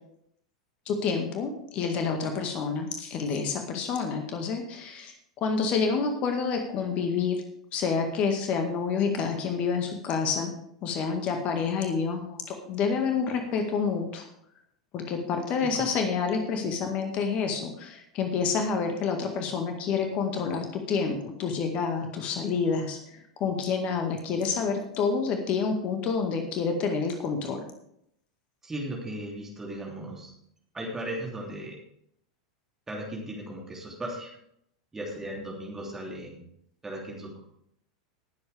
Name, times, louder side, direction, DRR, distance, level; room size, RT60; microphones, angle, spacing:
voice 1, 0.9-5.1 5.4-7.4 7.7-10.5 10.8-14.3 14.9-27.7, left 5 dB, 40° left, 4 dB, 2.0 m, -28 dB
voice 2, 28.6-30.3 30.7-31.8 32.9-34.3 34.9-36.5 36.8-37.5, right 1 dB, 15° right, -2 dB, 3.1 m, -37 dB
19.5 x 8.0 x 3.5 m, 0.72 s
figure-of-eight pair, 85°, 3 cm